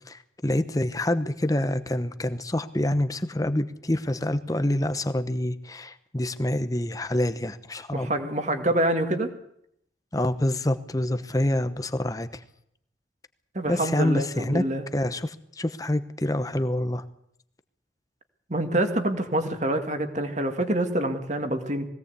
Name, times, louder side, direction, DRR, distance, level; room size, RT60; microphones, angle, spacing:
voice 1, 0.1-8.1 10.1-12.3 13.7-14.6 14.9-17.0, left 1 dB, 20° left, 10 dB, 0.9 m, -26 dB
voice 2, 7.9-9.3 13.5-14.8 18.5-21.9, right 1 dB, 40° right, 6 dB, 2.1 m, -26 dB
20.5 x 17.5 x 8.3 m, 0.72 s
head